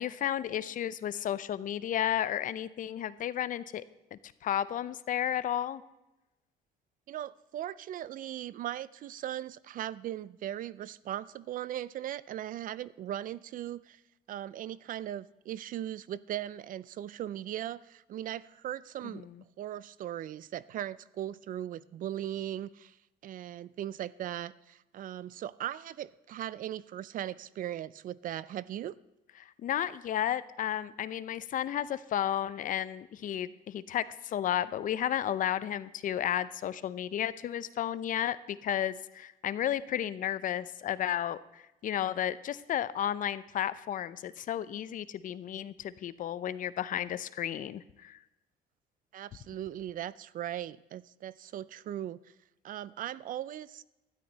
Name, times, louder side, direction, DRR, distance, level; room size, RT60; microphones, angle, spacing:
voice 1, 0.0-3.8 4.1-5.8 19.1-19.3 29.4-48.2, left 10 dB, 50° left, 16 dB, 0.6 m, -33 dB
voice 2, 7.1-14.0 14.3-19.3 19.6-23.0 23.2-28.9 49.1-52.2 52.6-53.8, right 12 dB, 55° right, 20 dB, 0.4 m, -38 dB
12.5 x 10.5 x 4.0 m, 0.97 s
cardioid pair, 110°, 17 cm